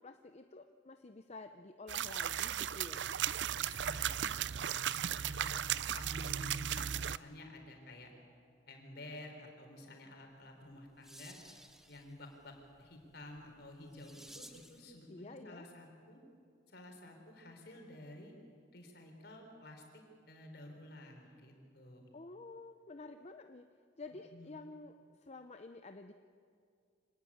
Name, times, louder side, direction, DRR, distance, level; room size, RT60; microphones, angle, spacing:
voice 1, 0.0-3.0 15.1-15.7 22.1-23.7 24.0-26.1, left 3 dB, 35° left, 7 dB, 0.7 m, -50 dB
sound 1, 1.9-7.2, right 9 dB, 70° right, 0.5 m, -36 dB
voice 2, 3.6-4.7 5.1-8.1 8.7-11.4 11.9-16.2 16.7-18.3 18.7-22.1 24.3-24.5, left 1 dB, 60° left, 3 dB, 4.5 m, -52 dB
sound 2, 10.5-14.9, equal, ahead, 1.0 m, -58 dB
25.5 x 18.5 x 8.7 m, 2.3 s
head